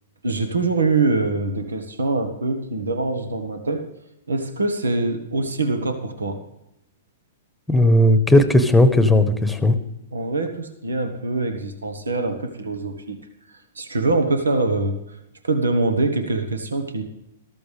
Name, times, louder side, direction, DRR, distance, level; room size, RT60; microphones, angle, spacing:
voice 1, 0.2-3.8 4.3-6.4 10.1-13.2 13.5-15.2 15.4-17.0, right 3 dB, 90° right, 7 dB, 1.3 m, -24 dB
voice 2, 7.7-9.8, left 1 dB, 5° left, 10 dB, 1.2 m, -16 dB
13.5 x 13.5 x 3.4 m, 0.86 s
hypercardioid pair, 120°, 0 cm